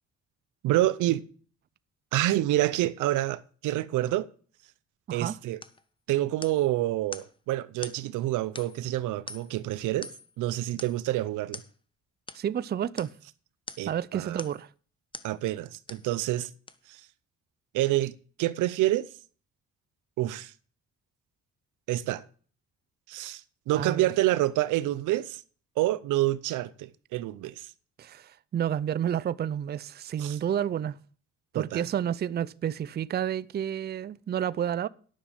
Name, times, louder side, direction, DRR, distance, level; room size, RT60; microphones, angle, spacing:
voice 1, 0.6-1.3 2.1-4.3 5.1-5.6 6.1-10.1 10.4-11.6 13.8-14.4 15.2-16.5 16.9-17.0 17.7-19.1 20.2-20.5 21.9-22.2 23.1-23.4 23.7-25.4 25.8-27.7 30.2-30.4 31.5-31.9, right 15 dB, 90° right, 0.7 m, -27 dB
sound 1, 5.6-5.8 6.4-6.7 7.1-7.3 7.8-8.0 8.6-8.9 9.3-9.6 10.0-10.3 10.8-11.0 11.5-11.7 12.3-12.4 13.0-13.2 13.7-13.9 14.4-14.7 15.1-15.3 15.9-16.1 16.7-16.8, left 3 dB, 15° left, 0.8 m, -43 dB
voice 2, 12.3-13.1 13.9-14.7 23.7-24.1 28.0-31.0 31.5-34.9, right 9 dB, 35° right, 0.4 m, -30 dB
10.0 x 6.3 x 7.2 m
cardioid pair, 90°, 30 cm